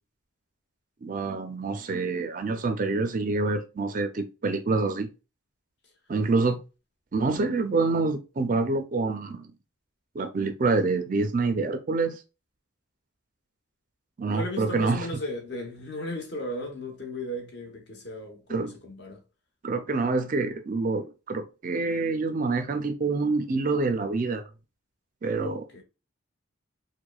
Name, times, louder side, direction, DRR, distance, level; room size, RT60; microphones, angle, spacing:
voice 1, 1.0-5.1 6.1-6.6 7.1-9.5 10.1-12.2 14.2-15.1 18.5-18.7 19.6-24.4 25.2-25.6, right 3 dB, 40° right, 0.4 m, -26 dB
voice 2, 14.3-19.2 25.4-25.8, left 1 dB, 55° left, 1.0 m, -36 dB
4.7 x 2.1 x 2.3 m
head